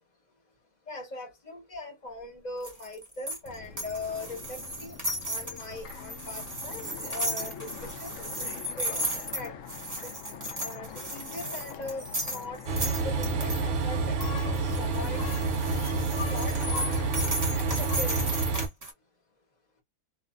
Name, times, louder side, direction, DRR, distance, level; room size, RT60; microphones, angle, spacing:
voice 1, 0.9-4.9 5.2-8.2 8.8-9.0 9.3-9.5 10.0-10.1 10.6-12.6 12.9-14.2 14.5-15.2 16.3-17.0 17.6-18.2, left 2 dB, 30° left, 1.0 m, -40 dB
sound 1, 2.6-13.6 14.2-18.9, right 1 dB, 25° right, 1.0 m, -35 dB
sound 2, 3.4-18.5, left 7 dB, 65° left, 0.8 m, -43 dB
Train, 12.7-18.7, right 4 dB, 70° right, 0.7 m, -28 dB
2.5 x 2.5 x 2.3 m
omnidirectional pair, 1.7 m